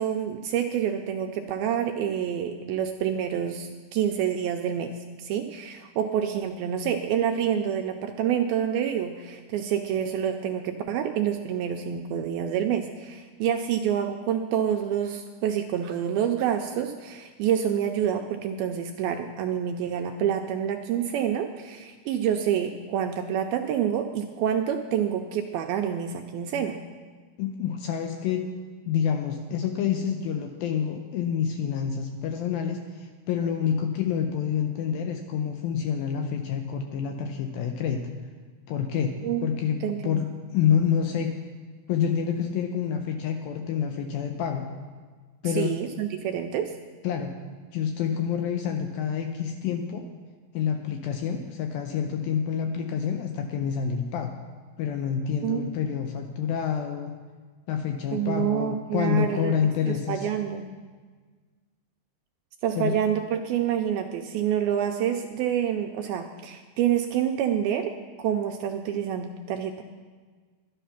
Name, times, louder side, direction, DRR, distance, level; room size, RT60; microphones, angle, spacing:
voice 1, 0.0-4.9 5.2-26.8 39.2-39.4 39.8-40.2 45.4-46.7 55.4-55.6 58.1-59.6 59.9-60.7 62.6-69.8, right 9 dB, 80° right, 4 dB, 2.2 m, -27 dB
voice 2, 27.4-28.5 28.9-38.1 38.7-39.1 39.4-41.4 41.9-44.7 45.4-45.8 47.0-47.3 47.7-50.1 50.5-54.3 54.8-57.2 57.7-60.3 62.8-63.0, left 8 dB, 80° left, 4 dB, 2.2 m, -28 dB
12.5 x 10.0 x 5.7 m, 1.5 s
omnidirectional pair, 4.7 m